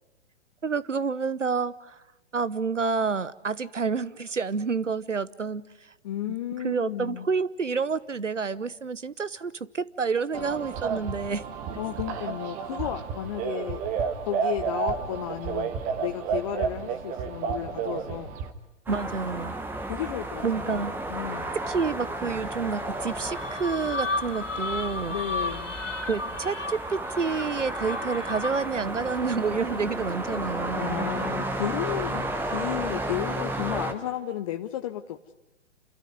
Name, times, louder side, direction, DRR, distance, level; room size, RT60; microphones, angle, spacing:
voice 1, 0.6-2.0 2.3-5.6 6.6-11.4 18.9-19.5 20.4-20.9 21.7-25.2 26.1-31.1, right 5 dB, 85° right, 16 dB, 1.0 m, -29 dB
voice 2, 6.0-7.3 11.8-13.8 14.2-18.4 19.9-21.6 25.1-25.7 30.7-35.3, left 12 dB, 30° left, 6 dB, 0.7 m, -33 dB
sound 1, 10.3-18.5, right 6 dB, 20° right, 1.4 m, -31 dB
sound 2, 18.9-33.9, right 1 dB, 5° right, 1.2 m, -33 dB
sound 3, 23.1-28.8, left 2 dB, 90° left, 1.8 m, -34 dB
28.5 x 13.5 x 9.6 m, 1.0 s
figure-of-eight pair, 125°, 36 cm